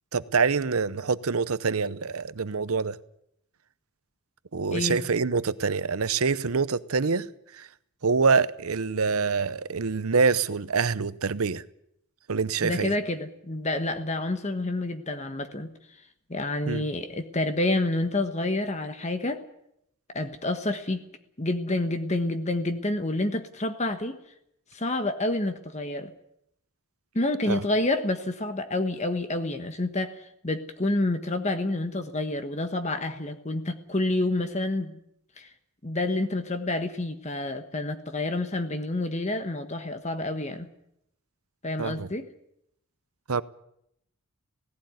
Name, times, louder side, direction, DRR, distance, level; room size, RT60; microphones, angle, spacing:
voice 1, 0.1-3.0 4.5-7.3 7.5-7.7 8.0-11.6 12.3-12.9 16.7-16.8 27.5-27.6 41.8-42.1 43.3-43.4, right 5 dB, 85° right, 0.8 m, -25 dB
voice 2, 12.6-15.7 16.3-19.4 20.1-21.0 21.4-24.2 24.7-26.1 27.1-30.2 30.4-35.0 35.4-35.5 35.8-40.7 41.6-42.3, left 2 dB, 30° left, 1.2 m, -28 dB
17.5 x 16.0 x 9.4 m
head